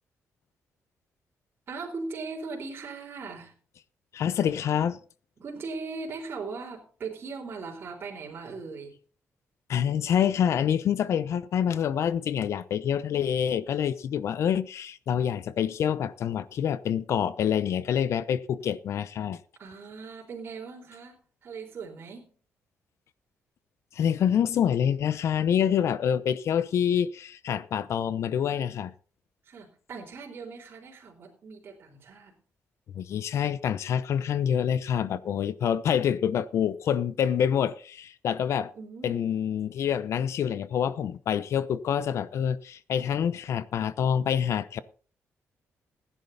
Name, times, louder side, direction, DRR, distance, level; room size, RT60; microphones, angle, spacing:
voice 1, 1.7-3.5 5.4-8.9 19.6-22.3 29.5-32.4 38.7-39.3, right 4 dB, 45° right, 4.0 m, -39 dB
voice 2, 4.1-5.0 9.7-19.4 23.9-28.9 32.9-38.7 39.0-44.8, left 8 dB, 65° left, 0.8 m, -26 dB
16.0 x 10.0 x 4.1 m
cardioid pair, 125°, 5 cm